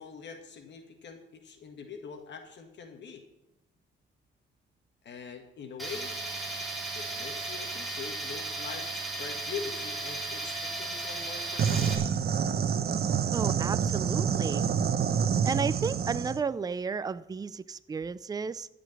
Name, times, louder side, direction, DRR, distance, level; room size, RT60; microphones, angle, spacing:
voice 1, 0.0-3.2 5.0-6.1 7.0-8.9 9.2-12.0, left 6 dB, 60° left, 5 dB, 1.8 m, -43 dB
Tools, 5.8-11.9, right 2 dB, ahead, 3.1 m, -35 dB
sound 1, 11.6-16.4, right 7 dB, 50° right, 1.0 m, -27 dB
voice 2, 13.3-14.7 15.4-18.7, right 5 dB, 20° right, 15 dB, 0.5 m, -33 dB
13.5 x 5.2 x 9.3 m, 0.88 s
cardioid pair, 90°, 20 cm